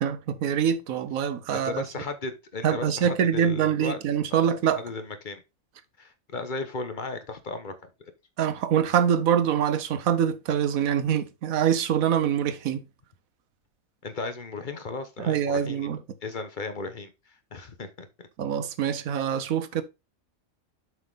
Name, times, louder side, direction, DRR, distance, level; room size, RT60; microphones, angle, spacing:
voice 1, 0.0-1.8 2.6-4.8 8.4-12.8 15.2-16.0 18.4-19.8, right 8 dB, 90° right, 1.2 m, -24 dB
voice 2, 1.5-4.0 4.3-4.4 4.7-5.4 6.0-7.7 14.0-15.9 16.2-18.3, left 3 dB, 40° left, 1.0 m, -35 dB
7.7 x 5.6 x 3.8 m
omnidirectional pair, 1.4 m